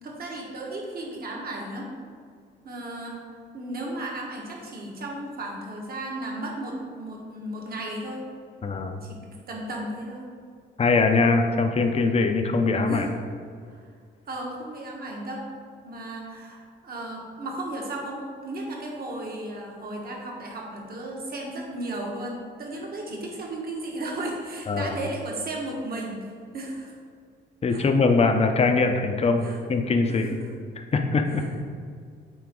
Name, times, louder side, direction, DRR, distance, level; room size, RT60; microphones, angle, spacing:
voice 1, 0.0-1.9 2.6-3.2 3.5-8.2 9.0-9.2 9.5-10.3 12.9-13.1 13.7-13.9 14.3-15.5 15.8-26.9 27.7-27.8 29.4-29.6 30.1-30.5 31.3-31.5, right 1 dB, 50° right, -1 dB, 1.6 m, -35 dB
voice 2, 8.6-9.0 10.8-13.1 24.7-24.9 27.6-30.3 30.9-31.4, left 4 dB, 30° left, 5 dB, 0.7 m, -22 dB
9.3 x 3.9 x 3.8 m, 2.1 s
cardioid pair, 90°, 20 cm